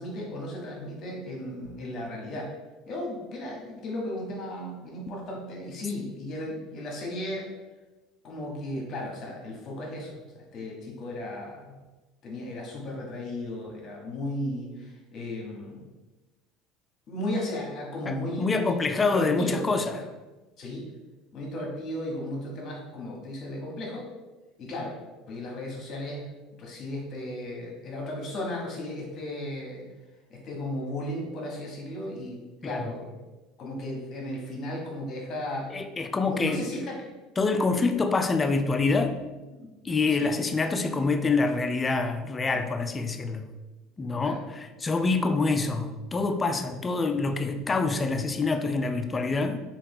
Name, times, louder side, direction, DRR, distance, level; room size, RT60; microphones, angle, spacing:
voice 1, 0.0-2.5 2.9-7.5 8.2-11.8 12.2-15.8 17.1-19.7 19.9-20.1 20.6-20.9 21.3-24.1 24.6-24.9 25.3-26.3 26.6-29.9 30.3-33.2 33.6-35.7 36.2-37.1 39.5-39.7 40.2-40.3 42.5-42.6 44.2-44.4, left 1 dB, 50° left, -1 dB, 1.0 m, -35 dB
voice 2, 18.1-20.0 32.6-32.9 35.7-36.8 37.4-39.2 39.8-43.5 44.0-49.6, left 3 dB, 25° left, 7 dB, 0.3 m, -26 dB
2.8 x 2.4 x 3.4 m, 1.1 s
hypercardioid pair, 85°, 0 cm